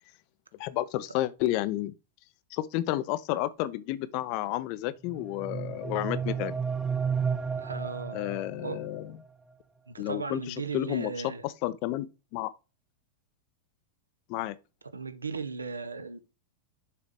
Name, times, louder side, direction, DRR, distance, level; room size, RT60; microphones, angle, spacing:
voice 1, 0.6-1.9 2.5-6.5 8.1-9.1 10.0-11.1 11.4-12.5 14.3-14.6, left 15 dB, 45° left, 0.5 m, -31 dB
sound 1, 5.1-9.0, right 6 dB, 15° right, 0.4 m, -32 dB
voice 2, 7.6-8.2 8.6-8.8 9.9-11.4 14.9-16.2, right 4 dB, 75° right, 0.8 m, -36 dB
6.8 x 4.8 x 3.5 m
figure-of-eight pair, 90°, 0 cm